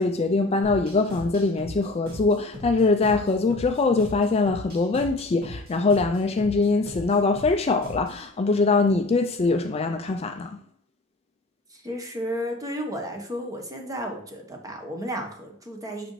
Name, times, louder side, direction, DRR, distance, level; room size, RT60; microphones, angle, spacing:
voice 1, 0.0-10.6, left 3 dB, 30° left, 0.4 m, -23 dB
sound 1, 0.6-8.2, left 1 dB, 50° right, 2.2 m, -39 dB
voice 2, 11.7-16.1, equal, 15° right, 1.1 m, -33 dB
6.0 x 5.1 x 3.1 m
head